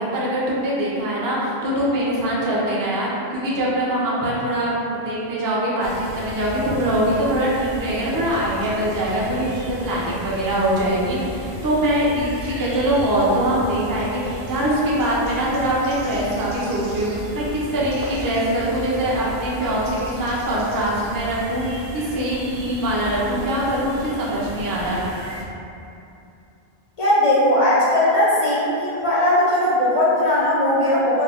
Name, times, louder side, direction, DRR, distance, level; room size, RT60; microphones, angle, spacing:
voice 1, 0.0-25.0, right 1 dB, 35° right, -7 dB, 0.3 m, -23 dB
sound 1, 5.8-25.4, right 1 dB, 70° right, 0.8 m, -35 dB
voice 2, 27.0-31.2, left 1 dB, 50° left, -8 dB, 0.4 m, -18 dB
2.4 x 2.0 x 3.4 m, 2.7 s
omnidirectional pair, 1.1 m